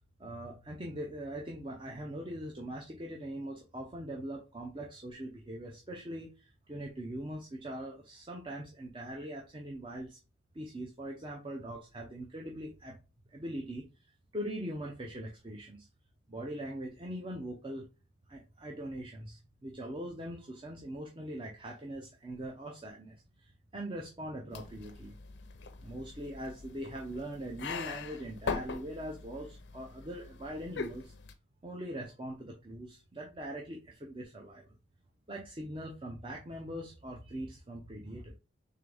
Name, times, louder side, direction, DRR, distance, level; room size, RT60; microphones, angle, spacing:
voice 1, 0.2-10.2 10.5-12.9 13.3-13.9 14.3-15.9 16.3-17.9 18.3-25.1 25.8-31.1 31.6-34.7 35.3-38.3, right 1 dB, 25° right, 0 dB, 0.6 m, -41 dB
sound 1, 24.5-31.3, left 4 dB, 65° left, 0.5 m, -42 dB
3.8 x 3.4 x 3.4 m, 0.30 s
head